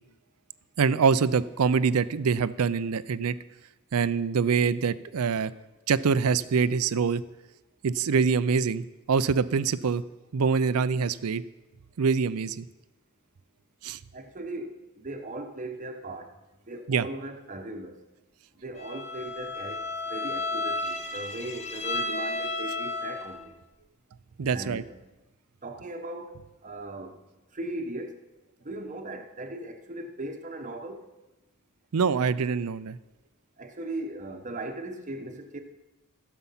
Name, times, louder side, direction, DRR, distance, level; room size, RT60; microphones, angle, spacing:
voice 1, 0.8-3.4 3.9-5.5 5.9-7.2 7.8-10.0 10.3-11.4 12.0-12.7 13.8-14.0 16.9-17.1 24.4-24.8 31.9-33.0, right 5 dB, 75° right, 0.5 m, -25 dB
voice 2, 14.1-18.0 18.6-23.6 24.5-24.9 25.6-27.2 27.5-28.2 28.6-31.1 33.6-35.6, right 1 dB, 35° right, 1.0 m, -38 dB
Bowed string instrument, 18.8-23.5, left 2 dB, 30° left, 0.7 m, -33 dB
15.5 x 7.1 x 5.6 m
head